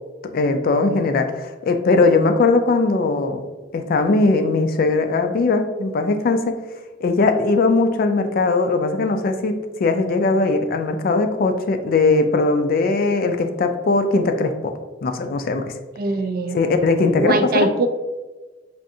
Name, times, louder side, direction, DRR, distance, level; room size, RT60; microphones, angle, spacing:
voice 1, 0.3-3.4 3.7-6.6 7.0-14.7 15.0-15.6 16.5-17.7, left 3 dB, 50° left, 7 dB, 0.3 m, -19 dB
voice 2, 16.0-16.7 17.2-17.9, right 2 dB, 50° right, 9 dB, 0.3 m, -21 dB
4.7 x 2.5 x 2.6 m, 1.2 s
head